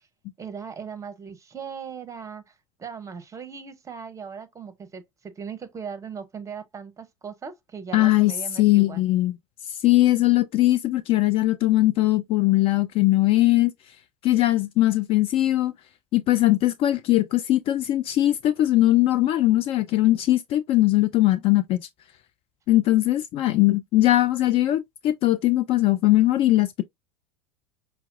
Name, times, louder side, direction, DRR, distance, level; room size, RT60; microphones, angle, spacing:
voice 1, 0.4-2.5 2.8-9.0, right 6 dB, 20° right, 0.8 m, -38 dB
voice 2, 7.9-8.3 8.6-9.4 9.8-13.7 14.2-15.7 16.1-21.8 22.7-26.8, left 16 dB, 35° left, 0.4 m, -20 dB
5.6 x 2.1 x 2.6 m
figure-of-eight pair, 80°, 16 cm